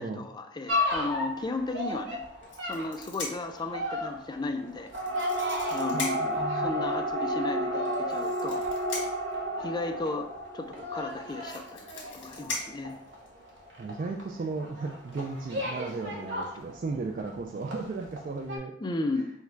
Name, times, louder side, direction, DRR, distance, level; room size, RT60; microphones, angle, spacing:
voice 1, 0.0-2.2 2.6-4.9 5.3-8.6 9.6-10.3 10.5-11.6 12.1-12.9 18.8-19.3, left 2 dB, 25° left, 6 dB, 0.4 m, -34 dB
sound 1, 0.7-17.4 17.7-18.2 18.5-18.6, equal, 70° right, 1.0 m, -32 dB
sound 2, 2.4-3.6 4.9-6.4 7.8-9.3 10.8-10.9 11.1-13.5 14.3-14.6 14.9-15.2, left 3 dB, 80° left, 1.4 m, -39 dB
voice 2, 5.9-6.9 13.8-18.7, right 3 dB, 45° right, 1 dB, 0.4 m, -35 dB
4.5 x 2.3 x 4.4 m, 0.69 s
head